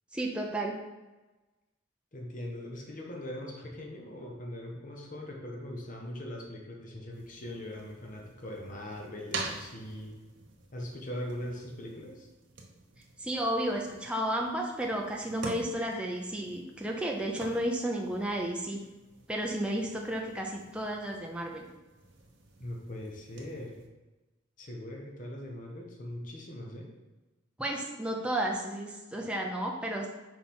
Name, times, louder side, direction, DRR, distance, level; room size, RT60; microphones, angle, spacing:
voice 1, 0.1-0.8 13.2-18.8 19.3-21.7 27.6-30.1, right 1 dB, 5° right, -1 dB, 0.5 m, -32 dB
voice 2, 2.1-10.1 10.7-12.3 22.6-23.8 24.6-26.9, left 1 dB, 40° left, 0 dB, 1.0 m, -41 dB
sound 1, 7.1-23.9, right 3 dB, 60° right, 0.9 m, -47 dB
5.5 x 4.5 x 4.3 m, 1.1 s
head